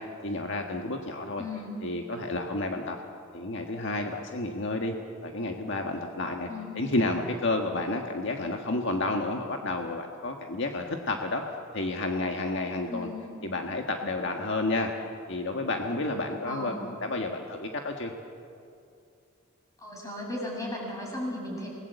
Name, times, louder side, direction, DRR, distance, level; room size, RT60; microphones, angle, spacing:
voice 1, 0.2-1.4 1.8-3.0 3.3-4.9 5.2-6.5 6.8-11.4 11.7-13.1 13.4-14.9 15.3-18.1, left 2 dB, 60° left, 3 dB, 1.6 m, -30 dB
voice 2, 1.4-1.7 6.5-6.8 12.9-13.3 16.5-16.8 19.8-21.7, left 2 dB, 15° left, -2 dB, 7.5 m, -36 dB
28.5 x 19.5 x 8.1 m, 2.5 s
head